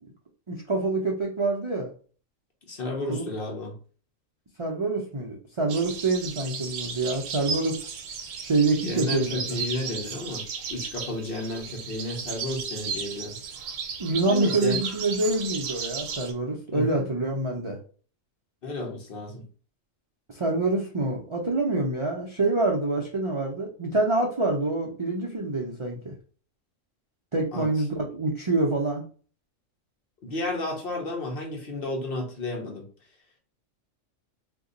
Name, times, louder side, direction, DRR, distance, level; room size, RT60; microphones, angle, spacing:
voice 1, 0.5-1.9 3.1-3.2 4.6-7.8 8.4-9.6 14.0-17.8 20.3-26.1 27.3-29.0, right 2 dB, 55° right, -1 dB, 0.3 m, -26 dB
voice 2, 2.7-3.7 8.8-10.4 10.7-13.4 14.3-14.8 16.7-17.1 18.6-19.4 27.5-27.7 30.2-32.9, left 2 dB, 50° left, 1 dB, 1.0 m, -32 dB
sound 1, 5.7-16.3, right 6 dB, 80° right, 1.0 m, -35 dB
2.7 x 2.2 x 3.7 m, 0.40 s
omnidirectional pair, 1.3 m